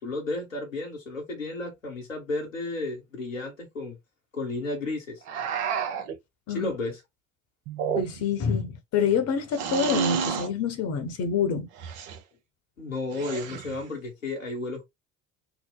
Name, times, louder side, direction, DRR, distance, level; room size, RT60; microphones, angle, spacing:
voice 1, 0.0-4.0 4.3-5.2 6.5-7.0 12.8-14.8, left 2 dB, 90° left, 1.0 m, -33 dB
sound 1, 5.3-6.2 7.7-8.4 9.5-10.5 11.8-12.2 13.1-13.8, right 7 dB, 60° right, 0.8 m, -30 dB
voice 2, 8.0-11.7, left 6 dB, 40° left, 0.9 m, -27 dB
2.9 x 2.1 x 3.9 m
figure-of-eight pair, 60°, 38 cm